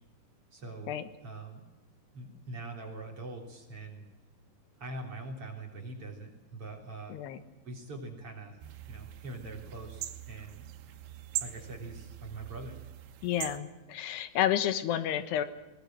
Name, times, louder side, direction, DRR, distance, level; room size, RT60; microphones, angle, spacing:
voice 1, 0.5-0.9 1.2-1.6 2.1-4.0 4.8-7.2 7.6-8.6 8.9-10.7 11.4-12.8, right 2 dB, 35° right, 0 dB, 4.0 m, -43 dB
voice 2, 7.1-7.4 13.2-15.4, left 11 dB, 75° left, 10 dB, 3.2 m, -30 dB
sound 1, 8.6-13.6, right 12 dB, 90° right, 3.7 m, -42 dB
21.0 x 20.0 x 7.7 m, 1.1 s
omnidirectional pair, 5.1 m